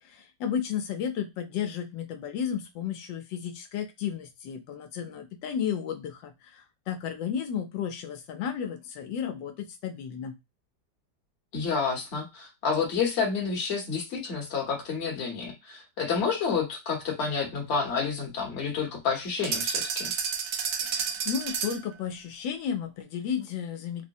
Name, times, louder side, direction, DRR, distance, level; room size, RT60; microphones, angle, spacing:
voice 1, 0.0-10.3 20.8-24.0, left 8 dB, 85° left, 6 dB, 1.3 m, -33 dB
voice 2, 11.5-20.1, left 5 dB, 40° left, 0 dB, 1.2 m, -29 dB
sound 1, 19.4-21.9, right 6 dB, 70° right, 0.8 m, -30 dB
3.8 x 2.0 x 2.6 m, 0.24 s
omnidirectional pair, 2.0 m